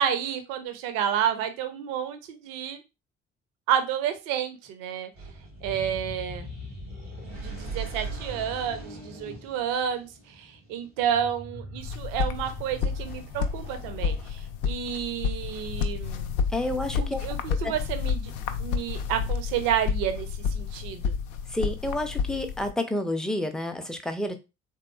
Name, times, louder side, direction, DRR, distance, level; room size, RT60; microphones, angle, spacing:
voice 1, 0.0-2.8 3.7-5.1 5.6-6.5 7.2-16.3 17.0-18.3 18.6-21.1, right 9 dB, 60° right, 9 dB, 0.7 m, -30 dB
sound 1, 5.1-14.7, right 1 dB, 90° right, 1.3 m, -41 dB
sound 2, 11.8-22.7, left 6 dB, 65° left, 0.5 m, -30 dB
voice 2, 16.5-17.2 17.6-17.7 21.5-24.4, left 1 dB, ahead, 6 dB, 0.5 m, -29 dB
3.6 x 2.9 x 2.3 m, 0.27 s
figure-of-eight pair, 45°, 37 cm